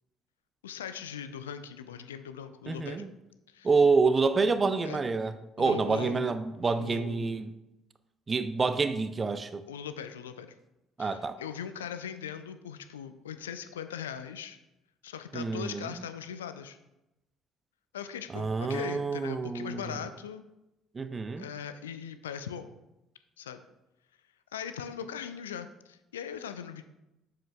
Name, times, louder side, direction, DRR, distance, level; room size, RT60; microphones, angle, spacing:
voice 1, 0.6-3.1 3.5-3.7 4.8-5.0 5.6-6.3 6.8-7.4 9.7-10.5 11.0-14.6 15.0-16.8 17.9-20.4 21.4-22.7 23.4-23.6 24.5-26.8, left 8 dB, 75° left, 10 dB, 0.4 m, -40 dB
voice 2, 2.7-3.1 3.6-7.5 8.3-9.6 11.0-11.4 15.3-15.9 18.3-19.8 20.9-21.5, right 4 dB, 30° right, 11 dB, 0.5 m, -27 dB
7.5 x 7.4 x 2.3 m, 0.92 s
figure-of-eight pair, 50°, 0 cm